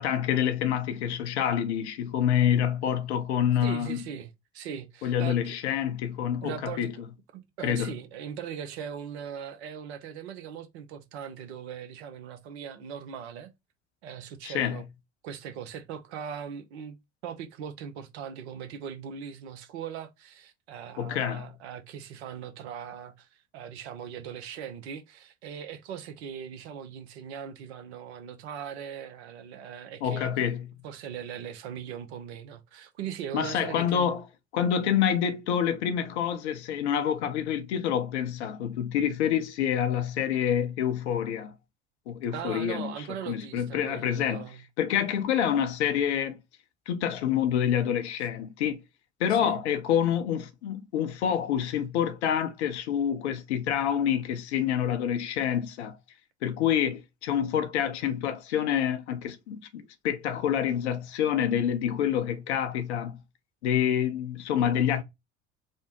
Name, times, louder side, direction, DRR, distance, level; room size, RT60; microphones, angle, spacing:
voice 1, 0.0-4.0 5.0-6.9 7.6-7.9 14.4-14.8 21.0-21.5 30.0-30.7 33.3-34.2 34.5-41.5 42.1-42.9 43.3-44.4 44.8-46.4 46.9-48.8 49.2-56.0 56.4-63.2 63.6-65.0, left 9 dB, 70° left, 0.6 m, -27 dB
voice 2, 3.6-5.5 6.4-6.9 7.3-13.5 14.0-14.9 15.2-17.0 17.2-30.3 30.8-34.1 42.3-44.6 49.4-49.6, right 8 dB, 65° right, 0.7 m, -39 dB
3.3 x 2.1 x 2.9 m
figure-of-eight pair, 60°, 35 cm